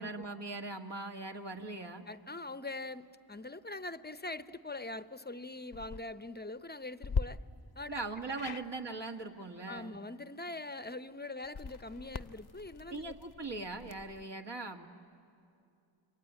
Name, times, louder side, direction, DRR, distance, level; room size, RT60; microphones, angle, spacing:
voice 1, 0.0-2.0 7.9-9.9 12.9-14.9, right 3 dB, 60° right, 2 dB, 1.9 m, -40 dB
voice 2, 2.1-7.4 7.8-8.0 8.5-8.6 9.7-13.1, left 2 dB, 20° left, 13 dB, 0.7 m, -43 dB
sound 1, 5.6-6.0 7.0-7.2 8.3-8.7 11.4-14.2, left 5 dB, 55° left, 0.7 m, -39 dB
28.5 x 23.5 x 8.9 m, 2.6 s
wide cardioid pair, 55°, 47 cm